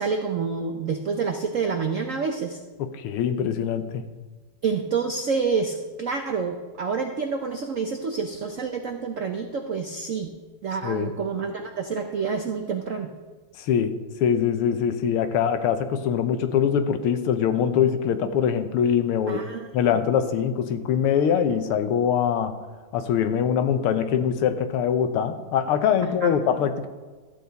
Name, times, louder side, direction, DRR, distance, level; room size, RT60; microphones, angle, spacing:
voice 1, 0.0-2.6 4.6-10.3 10.6-13.1 19.3-19.7 26.0-26.3, right 5 dB, 90° right, 4 dB, 0.7 m, -28 dB
voice 2, 2.8-4.0 10.8-11.1 13.6-13.9 14.2-19.4 19.7-22.5 22.9-26.9, left 8 dB, 85° left, 9 dB, 1.7 m, -23 dB
13.0 x 8.7 x 4.0 m, 1.4 s
omnidirectional pair, 2.4 m